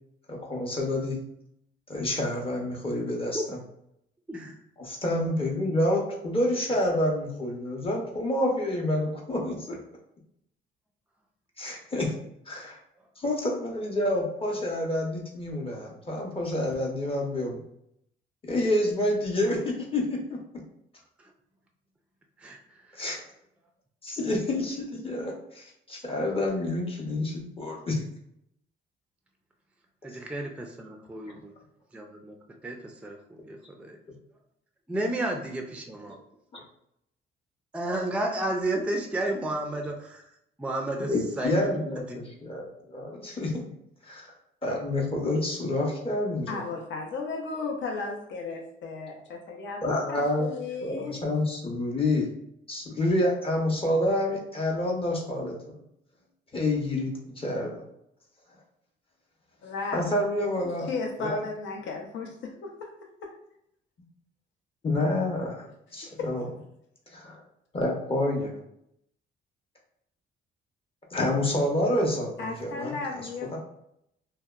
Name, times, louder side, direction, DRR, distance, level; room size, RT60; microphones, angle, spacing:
voice 1, 0.3-1.2 1.9-3.4 4.8-9.8 11.6-12.1 12.5-12.8 13.2-17.6 18.4-20.4 22.9-23.2 24.0-28.0 36.5-36.6 41.1-43.6 44.1-44.3 44.6-46.6 49.8-50.5 50.8-52.3 52.7-55.5 56.5-57.8 59.9-60.9 61.2-61.4 64.8-66.4 67.1-67.4 67.7-68.6 71.1-73.6, left 1 dB, 30° left, -1 dB, 0.7 m, -28 dB
voice 2, 22.4-23.0 30.0-31.5 31.9-32.4 32.6-34.0 34.9-36.2 37.7-40.3 40.6-42.4, right 1 dB, 5° right, 2 dB, 0.4 m, -32 dB
voice 3, 46.5-51.2 59.6-60.0 60.6-63.3 66.0-66.5 72.4-73.6, left 4 dB, 70° left, 2 dB, 0.6 m, -35 dB
2.7 x 2.1 x 2.3 m, 0.76 s
cardioid pair, 90°, 20 cm